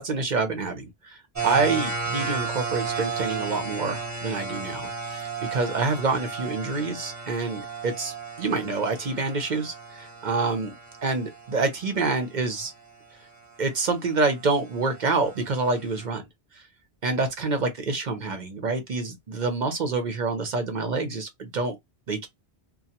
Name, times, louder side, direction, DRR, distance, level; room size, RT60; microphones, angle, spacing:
voice 1, 0.0-10.7 11.0-12.7 13.6-16.2 17.0-21.8 22.1-22.3, right 3 dB, 50° right, 0.8 m, -27 dB
sound 1, 1.4-12.1 14.1-16.1, right 5 dB, 20° right, 0.6 m, -34 dB
2.3 x 2.1 x 2.7 m
omnidirectional pair, 1.1 m